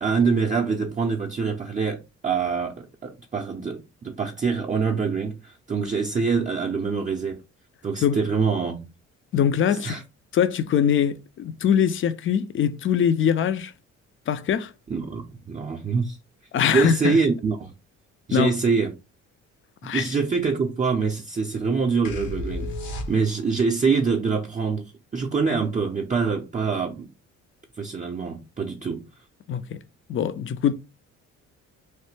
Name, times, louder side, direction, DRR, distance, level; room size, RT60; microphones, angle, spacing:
voice 1, 0.0-7.4 7.8-8.9 9.8-10.0 14.9-16.2 16.7-17.7 18.3-19.0 19.8-27.1 27.8-29.0, right 5 dB, 25° right, 0.5 m, -25 dB
voice 2, 9.3-10.0 10.3-13.7 14.3-14.7 16.5-17.2 18.3-18.5 19.8-20.1 29.5-29.8 30.1-30.8, left 8 dB, 45° left, 0.4 m, -22 dB
sound 1, 22.1-23.6, left 1 dB, 75° left, 0.9 m, -32 dB
3.2 x 2.1 x 3.1 m
cardioid pair, 90°, 30 cm